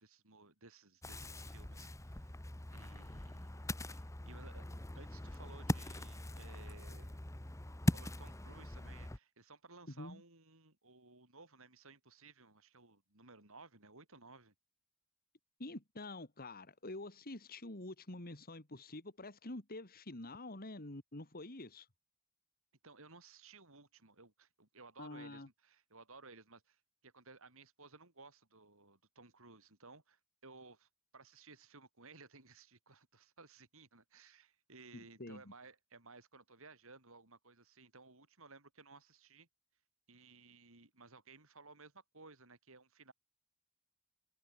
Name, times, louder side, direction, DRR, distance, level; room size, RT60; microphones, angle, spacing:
voice 1, 0.0-2.3 2.7-4.7 4.9-7.2 7.9-14.5 22.8-39.5 40.1-43.1, right 3 dB, 65° right, 5.5 m, -58 dB
Ocean, 1.0-9.2, left 1 dB, 15° left, 0.9 m, -41 dB
voice 2, 15.6-21.9 25.0-25.5 34.9-35.5, left 2 dB, 45° left, 2.7 m, -47 dB
head